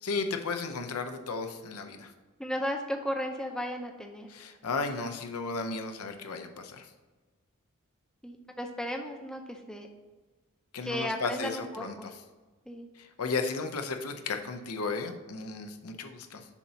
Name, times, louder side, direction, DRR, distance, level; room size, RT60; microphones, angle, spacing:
voice 1, 0.0-2.1 4.3-6.9 10.7-12.2 13.0-16.5, left 4 dB, 90° left, 6 dB, 0.7 m, -34 dB
voice 2, 2.4-4.3 8.2-9.9 10.8-12.1 12.7-12.9, equal, 5° left, 3 dB, 0.5 m, -35 dB
7.1 x 2.8 x 5.7 m, 1.3 s
head